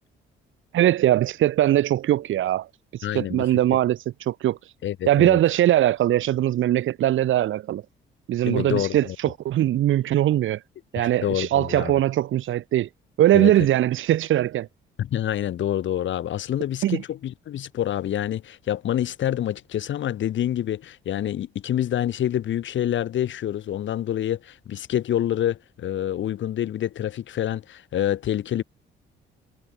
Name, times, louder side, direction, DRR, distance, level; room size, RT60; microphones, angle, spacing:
voice 1, 0.7-2.7 2.9-4.7 5.1-7.8 8.3-10.6 10.9-12.9 13.2-14.7 16.8-17.0, right 13 dB, 80° right, 5.8 m, -21 dB
voice 2, 3.0-3.5 4.8-5.4 8.4-9.2 11.0-11.9 13.3-13.5 15.0-28.6, left 11 dB, 70° left, 6.6 m, -27 dB
cardioid pair, 90°, 20 cm